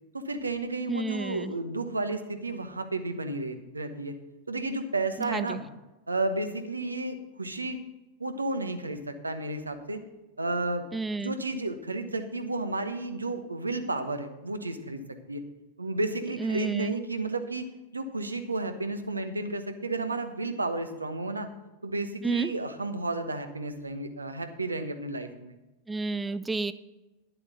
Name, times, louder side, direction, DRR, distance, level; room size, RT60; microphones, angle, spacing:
voice 1, 0.1-4.1 4.5-5.6 6.1-7.8 8.2-10.0 10.4-10.9 11.2-15.0 15.3-15.4 15.8-17.7 17.9-21.5 21.8-25.5, right 2 dB, 80° right, 7 dB, 1.1 m, -32 dB
voice 2, 0.9-1.5 5.2-5.6 10.9-11.4 16.4-16.9 22.2-22.5 25.9-26.7, right 3 dB, 10° right, 14 dB, 0.4 m, -30 dB
10.5 x 7.6 x 6.6 m, 1.0 s
figure-of-eight pair, 90°, 0 cm